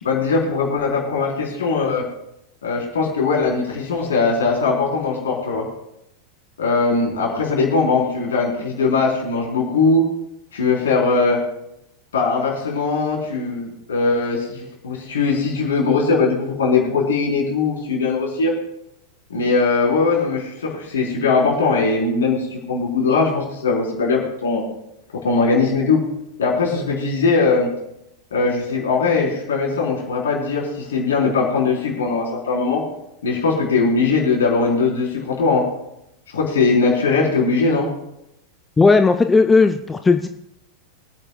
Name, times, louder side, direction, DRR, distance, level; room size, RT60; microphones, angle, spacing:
voice 1, 0.0-2.1 2.6-5.7 6.6-10.1 10.5-11.4 12.1-18.5 19.3-24.6 25.1-26.1 26.4-27.7 28.3-32.8 33.2-35.7 36.3-37.9, left 4 dB, 65° left, -2 dB, 4.0 m, -20 dB
voice 2, 38.8-40.3, left 4 dB, 10° left, 7 dB, 0.5 m, -15 dB
25.0 x 8.8 x 2.3 m, 0.84 s
figure-of-eight pair, 90°, 0 cm